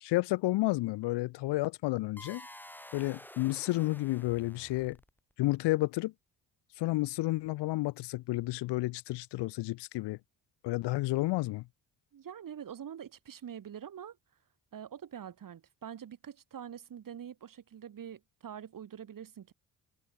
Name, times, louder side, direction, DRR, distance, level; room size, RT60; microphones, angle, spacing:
voice 1, 0.0-2.4 2.9-5.0 5.4-6.1 6.8-10.2 10.6-11.6, left 19 dB, 75° left, 0.7 m, -31 dB
sound 1, 2.2-5.3, left 1 dB, 5° left, 5.9 m, -50 dB
voice 2, 12.1-14.2 14.7-19.5, right 9 dB, 50° right, 2.0 m, -45 dB
open air
supercardioid pair, 70°, 41 cm